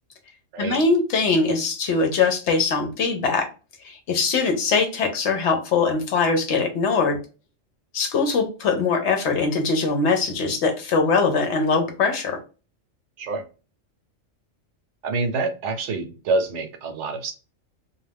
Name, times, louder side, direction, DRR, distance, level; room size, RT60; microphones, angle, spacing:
voice 1, 0.6-3.5 3.8-7.2 7.9-12.4, left 4 dB, 65° left, 5 dB, 0.9 m, -22 dB
voice 2, 15.0-17.3, right 3 dB, 70° right, 6 dB, 0.9 m, -26 dB
2.5 x 2.3 x 3.3 m, 0.34 s
omnidirectional pair, 1.3 m